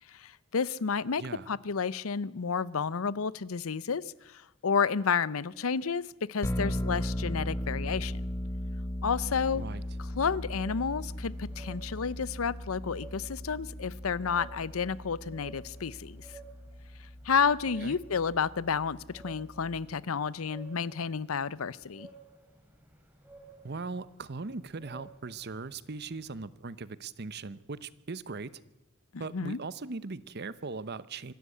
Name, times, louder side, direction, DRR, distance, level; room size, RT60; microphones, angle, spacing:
voice 1, 0.1-8.3 9.0-9.6 10.2-16.3 17.2-22.1 29.1-29.6, left 6 dB, 90° left, 20 dB, 0.7 m, -31 dB
voice 2, 1.2-1.5 9.5-9.8 17.8-18.0 23.6-28.5 29.2-31.3, right 3 dB, 50° right, 17 dB, 0.8 m, -39 dB
sound 1, 6.4-19.8, left 1 dB, 15° left, 1.3 m, -37 dB
sound 2, 9.0-26.5, right 3 dB, 10° right, 3.3 m, -55 dB
25.5 x 13.0 x 8.4 m, 0.94 s
head